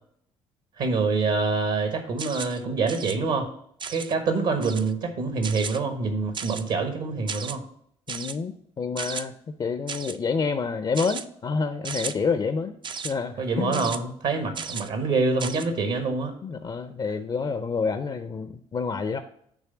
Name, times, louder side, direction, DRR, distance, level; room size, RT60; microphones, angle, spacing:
voice 1, 0.8-3.5 3.9-7.6 13.4-16.3, right 4 dB, 60° right, 6 dB, 1.2 m, -26 dB
sound 1, 2.2-2.6 2.9-3.2 3.8-4.1 4.6-4.9 5.4-5.8 6.3-6.7 7.3-7.6 8.1-8.4 9.0-9.2 9.9-10.2 10.9-11.2 11.8-12.1 12.8-13.1 13.7-14.0 14.5-14.9 15.4-15.7, right 6 dB, 30° right, 0.4 m, -34 dB
voice 2, 8.1-9.3 9.6-12.8 13.0-13.9 16.4-19.2, left 5 dB, 30° left, 9 dB, 0.5 m, -28 dB
8.9 x 3.3 x 5.7 m, 0.68 s
figure-of-eight pair, 50°, 16 cm